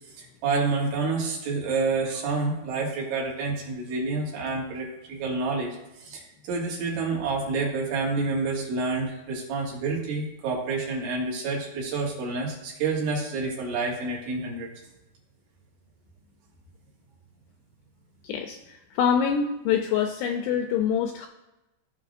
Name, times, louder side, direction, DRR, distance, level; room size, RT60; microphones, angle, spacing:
voice 1, 0.1-5.7 6.0-14.7, right 3 dB, 75° right, -4 dB, 4.3 m, -28 dB
voice 2, 18.2-21.3, left 7 dB, 85° left, 4 dB, 2.4 m, -25 dB
16.5 x 5.7 x 2.6 m, 0.96 s
omnidirectional pair, 5.4 m